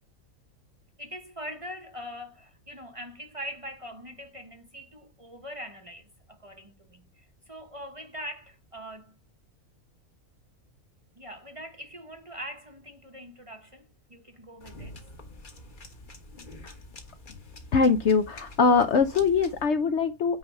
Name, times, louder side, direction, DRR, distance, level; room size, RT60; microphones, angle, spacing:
voice 1, 1.0-9.2 11.1-15.0, equal, 25° right, 1.0 m, -42 dB
sound 1, 14.6-19.7, left 1 dB, 35° left, 1.4 m, -47 dB
voice 2, 17.7-20.4, left 5 dB, 60° left, 0.9 m, -22 dB
9.5 x 3.3 x 5.5 m
omnidirectional pair, 1.5 m